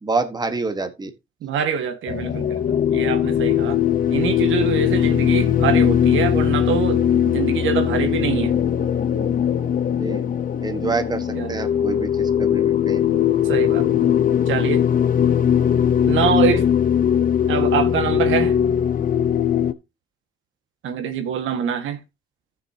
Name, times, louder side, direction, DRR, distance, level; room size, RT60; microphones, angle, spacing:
voice 1, 0.0-1.1 10.0-10.2 10.6-13.1, right 3 dB, 20° right, 1.4 m, -27 dB
voice 2, 1.4-3.8 4.1-8.6 11.3-11.6 13.4-13.9 14.5-14.8 16.1-16.7 17.5-18.6 20.8-22.0, right 7 dB, 80° right, 1.8 m, -24 dB
sound 1, 2.1-19.7, left 9 dB, 45° left, 0.9 m, -20 dB
14.0 x 6.7 x 2.9 m
cardioid pair, 90°, 20 cm